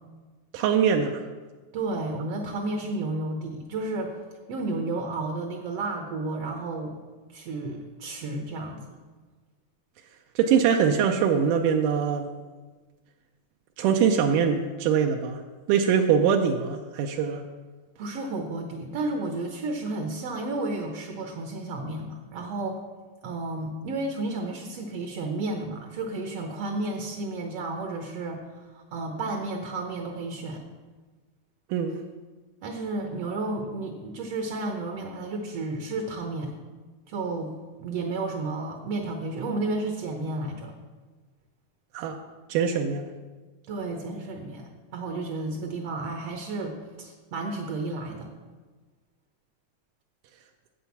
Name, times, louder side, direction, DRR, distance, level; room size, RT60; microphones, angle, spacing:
voice 1, 0.5-1.2 10.4-12.3 13.8-15.4 15.7-17.4 31.7-32.0 41.9-42.2 42.5-43.1, right 7 dB, 85° right, 4 dB, 2.2 m, -23 dB
voice 2, 1.7-4.1 4.5-6.9 7.3-9.0 18.0-22.8 23.2-28.4 28.7-30.6 32.6-36.5 37.1-37.5 37.8-40.7 43.7-48.3, right 2 dB, 65° right, 3 dB, 1.6 m, -32 dB
8.0 x 7.8 x 7.0 m, 1.3 s
omnidirectional pair, 3.7 m